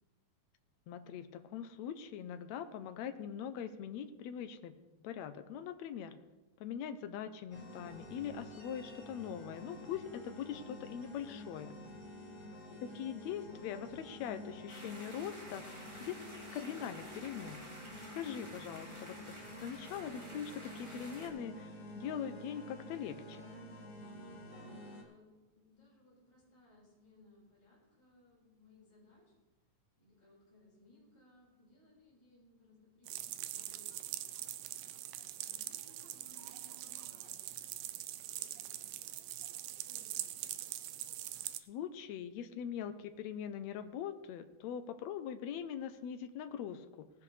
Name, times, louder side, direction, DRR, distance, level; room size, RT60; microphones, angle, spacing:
voice 1, 0.9-6.2 6.6-11.8 12.8-16.2 16.5-17.7 18.1-23.4 41.6-47.1, left 8 dB, 75° left, 10 dB, 1.7 m, -42 dB
sound 1, 7.5-25.0, left 1 dB, 25° left, 2.2 m, -50 dB
voice 2, 12.1-12.7 24.4-29.3 30.0-34.3 35.4-37.5 38.2-39.3 39.8-40.8, left 2 dB, 10° left, -7 dB, 4.9 m, -64 dB
sound 2, 14.7-21.3, equal, 10° right, 1.7 m, -52 dB
sound 3, 33.1-41.6, right 13 dB, 85° right, 2.2 m, -43 dB
18.0 x 10.5 x 3.3 m, 1.1 s
omnidirectional pair, 3.7 m